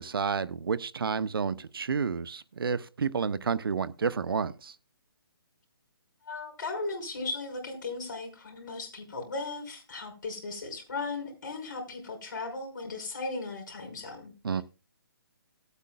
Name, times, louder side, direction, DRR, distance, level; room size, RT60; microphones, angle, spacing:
voice 1, 0.0-4.7 14.4-14.6, right 6 dB, 75° right, 0.7 m, -30 dB
voice 2, 6.2-14.3, left 3 dB, 55° left, 4.6 m, -37 dB
18.5 x 8.2 x 2.2 m
hypercardioid pair, 160°, 12 cm